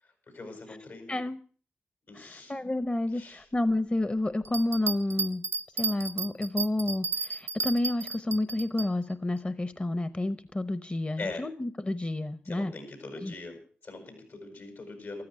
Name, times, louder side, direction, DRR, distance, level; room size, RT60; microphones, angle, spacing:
voice 1, 0.0-1.2 2.1-2.5 3.1-3.5 11.2-11.5 12.4-15.2, left 3 dB, 80° left, 5 dB, 7.1 m, -42 dB
voice 2, 2.1-5.4 5.8-12.7 13.2-13.3, left 1 dB, 30° left, 14 dB, 0.8 m, -30 dB
Bell, 4.4-8.9 9.4-9.5, right 4 dB, 85° right, 0.7 m, -33 dB
14.5 x 13.5 x 6.2 m, 0.43 s
cardioid pair, 50°, 4 cm